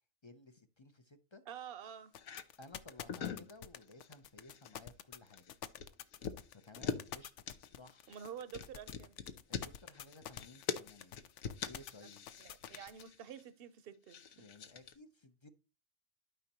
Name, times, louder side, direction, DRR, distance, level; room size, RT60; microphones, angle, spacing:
voice 1, 0.2-1.4 2.6-5.5 6.5-8.1 9.5-12.3 14.3-15.5, left 2 dB, 35° left, 0.5 m, -57 dB
voice 2, 1.5-2.1 6.8-6.9 8.1-9.2 12.0-12.1 12.4-14.5, right 9 dB, 55° right, 0.8 m, -49 dB
sound 1, 2.1-13.0, left 10 dB, 70° left, 0.9 m, -48 dB
sound 2, 2.2-2.4 2.9-3.5 3.8-4.1 4.4-4.8 5.1-7.1 7.5-13.4 14.1-14.9, left 7 dB, 85° left, 1.3 m, -43 dB
12.5 x 5.3 x 2.9 m
omnidirectional pair, 1.4 m